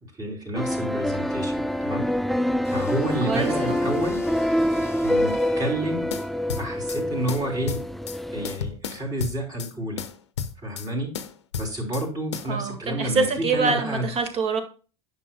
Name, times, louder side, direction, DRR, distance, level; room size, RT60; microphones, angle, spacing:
voice 1, 0.2-2.1 2.7-4.2 5.0-6.1 6.6-7.8 8.3-10.0 10.6-11.1 11.5-14.1, right 1 dB, 25° right, 1 dB, 3.2 m, -29 dB
sound 1, 0.5-8.6, equal, ahead, 0.4 m, -26 dB
sound 2, 2.6-6.1, left 4 dB, 15° left, 1.1 m, -41 dB
voice 2, 3.3-3.8 12.5-14.6, right 4 dB, 40° right, 6 dB, 1.7 m, -25 dB
sound 3, 6.1-7.0 7.3-8.2 8.4-9.7 10.0-10.9 11.1-12.1 12.3-12.5, left 7 dB, 70° left, 0.7 m, -33 dB
10.0 x 5.8 x 2.2 m, 0.36 s
figure-of-eight pair, 65°, 15 cm